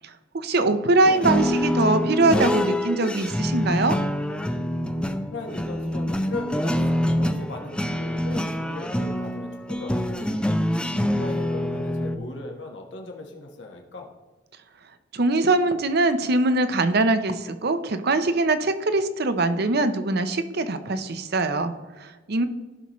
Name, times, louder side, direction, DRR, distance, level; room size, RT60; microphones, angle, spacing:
voice 1, 0.0-4.0 15.1-22.5, right 2 dB, 55° right, 10 dB, 0.7 m, -22 dB
sound 1, 1.0-12.2, equal, 5° left, 0.4 m, -26 dB
voice 2, 1.1-1.6 5.1-10.4 10.9-14.1, left 2 dB, 65° left, 2 dB, 1.4 m, -38 dB
15.5 x 5.8 x 3.1 m, 1.3 s
head